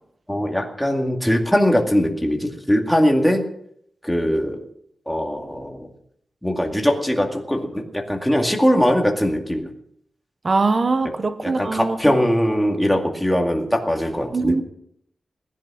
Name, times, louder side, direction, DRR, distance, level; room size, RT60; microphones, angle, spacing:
voice 1, 0.3-3.4 4.0-4.6 5.1-5.9 6.4-9.7 11.4-14.5, equal, ahead, 2.2 m, -21 dB
voice 2, 10.4-12.0 14.3-14.6, right 3 dB, 35° right, 1.0 m, -21 dB
19.0 x 11.0 x 6.2 m
wide cardioid pair, 180°, 0 cm